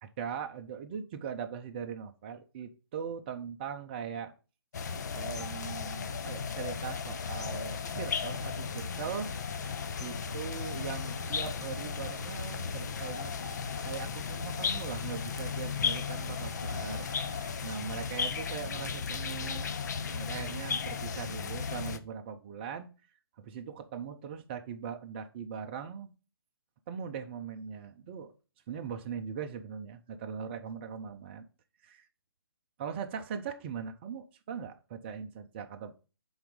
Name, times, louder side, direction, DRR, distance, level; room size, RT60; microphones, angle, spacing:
voice 1, 0.0-4.3 5.1-9.3 10.0-13.4 13.8-17.1 17.6-19.7 20.1-22.9 23.4-26.1 26.9-28.3 28.7-31.5 31.8-32.1 32.8-35.9, right 7 dB, 25° right, 0.6 m, -40 dB
sound 1, 4.7-22.0, left 6 dB, 45° left, 0.6 m, -35 dB
sound 2, 7.8-17.5, right 4 dB, 45° right, 1.2 m, -55 dB
5.8 x 3.9 x 5.2 m
figure-of-eight pair, 145°, 13 cm